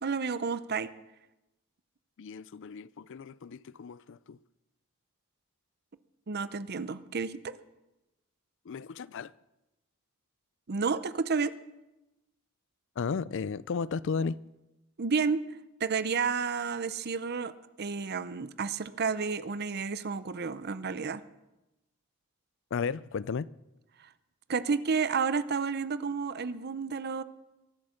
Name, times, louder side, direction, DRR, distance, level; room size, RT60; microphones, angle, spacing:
voice 1, 0.0-0.9 6.3-7.5 10.7-11.5 15.0-15.4 15.8-17.5 17.8-21.2 24.0-24.1 24.5-27.2, right 5 dB, 50° right, 0.7 m, -31 dB
voice 2, 2.2-4.4 8.7-9.3 13.0-14.4 22.7-23.5, left 5 dB, 60° left, 0.4 m, -34 dB
22.5 x 8.1 x 6.4 m
head